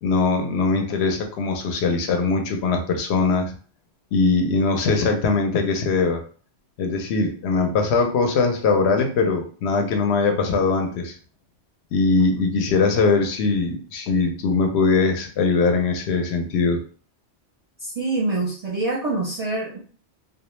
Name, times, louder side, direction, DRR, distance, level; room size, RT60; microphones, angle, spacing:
voice 1, 0.0-3.5 4.1-6.2 6.8-11.2 11.9-16.8, left 4 dB, 70° left, 4 dB, 0.8 m, -21 dB
voice 2, 17.8-19.8, right 2 dB, 40° right, -4 dB, 0.6 m, -25 dB
2.3 x 2.1 x 3.0 m, 0.41 s
omnidirectional pair, 1.2 m